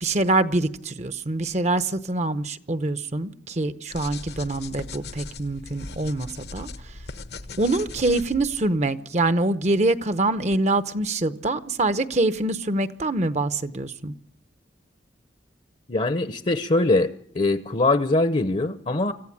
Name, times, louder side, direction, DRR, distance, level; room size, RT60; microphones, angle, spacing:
voice 1, 0.0-6.7 7.6-14.1, right 2 dB, 40° right, 0.8 m, -25 dB
sound 1, 3.9-8.7, left 3 dB, 65° left, 1.0 m, -39 dB
voice 2, 15.9-19.1, left 2 dB, 40° left, 0.8 m, -22 dB
25.0 x 15.0 x 8.7 m
head